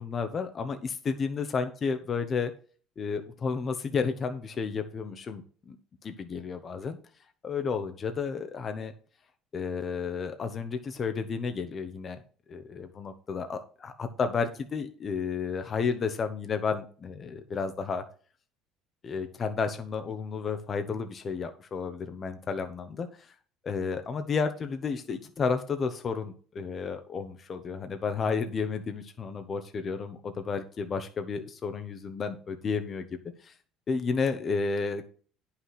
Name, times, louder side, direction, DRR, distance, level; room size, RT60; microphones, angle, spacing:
voice 1, 0.0-2.5 3.0-5.8 6.0-7.0 7.4-8.9 9.5-12.2 12.5-18.0 19.0-23.3 23.6-33.0 33.4-33.5 33.9-35.0, left 5 dB, 35° left, 8 dB, 1.1 m, -32 dB
9.6 x 5.9 x 5.9 m, 0.41 s
supercardioid pair, 105°, 0 cm